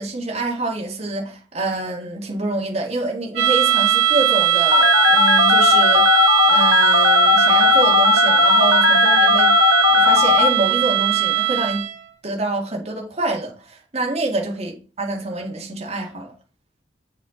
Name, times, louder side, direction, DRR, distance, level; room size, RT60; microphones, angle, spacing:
voice 1, 0.0-6.1 6.4-9.6 9.9-11.9 12.2-16.3, right 2 dB, 40° right, 1.8 m, -26 dB
sound 1, 3.3-12.1, right 13 dB, 70° right, 2.4 m, -19 dB
Telephone, 4.7-10.5, left 7 dB, 80° left, 1.1 m, -16 dB
8.1 x 5.6 x 3.8 m
head